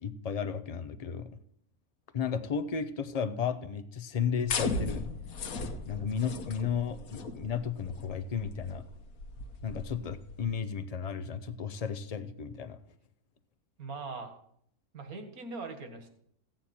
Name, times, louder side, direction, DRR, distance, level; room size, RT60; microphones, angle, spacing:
voice 1, 0.0-1.3 2.1-5.0 5.9-8.8 9.6-12.8, left 7 dB, 50° left, 12 dB, 0.4 m, -34 dB
sound 1, 4.5-10.5, left 3 dB, 65° left, 1.4 m, -37 dB
voice 2, 13.8-14.4 14.9-16.1, right 4 dB, 70° right, 5 dB, 2.1 m, -41 dB
15.5 x 9.0 x 4.3 m, 0.67 s
omnidirectional pair, 1.6 m